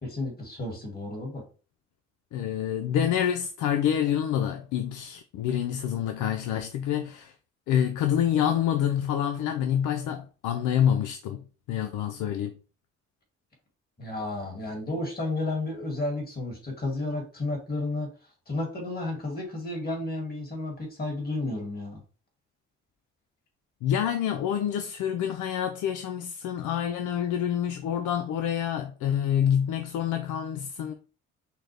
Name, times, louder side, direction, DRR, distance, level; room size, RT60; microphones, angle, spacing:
voice 1, 0.0-1.4 14.0-18.1 18.5-22.0, left 2 dB, 30° left, 2.1 m, -32 dB
voice 2, 2.3-7.3 7.7-11.4 11.7-12.6 23.8-30.9, left 9 dB, 85° left, 0.5 m, -27 dB
5.7 x 2.2 x 3.3 m
cardioid pair, 90°, 30 cm